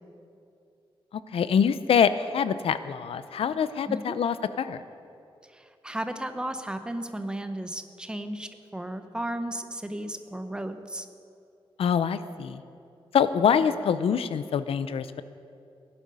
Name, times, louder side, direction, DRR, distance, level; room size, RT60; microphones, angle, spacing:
voice 1, 1.3-4.8 11.8-12.6 13.1-15.2, left 7 dB, 85° left, 13 dB, 0.6 m, -25 dB
voice 2, 5.5-11.1, right 1 dB, 10° right, 8 dB, 0.7 m, -34 dB
17.5 x 11.5 x 5.5 m, 2.6 s
wide cardioid pair, 170°, 10 cm